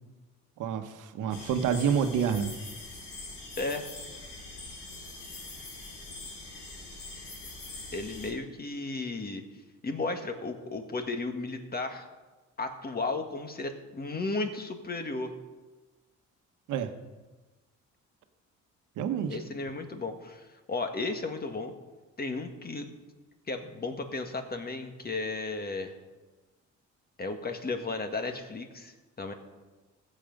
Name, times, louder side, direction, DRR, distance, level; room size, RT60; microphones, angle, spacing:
voice 1, 0.6-2.5 16.7-16.9 19.0-19.4, right 7 dB, 85° right, 7 dB, 1.1 m, -28 dB
sound 1, 1.3-8.3, left 2 dB, 80° left, 3.6 m, -43 dB
voice 2, 3.6-3.9 7.9-9.4 9.8-12.1 12.6-15.3 19.3-21.7 22.2-22.9 23.5-25.9 27.2-29.3, left 3 dB, 30° left, 5 dB, 1.7 m, -34 dB
15.5 x 7.7 x 5.3 m, 1.2 s
cardioid pair, 90°, 30 cm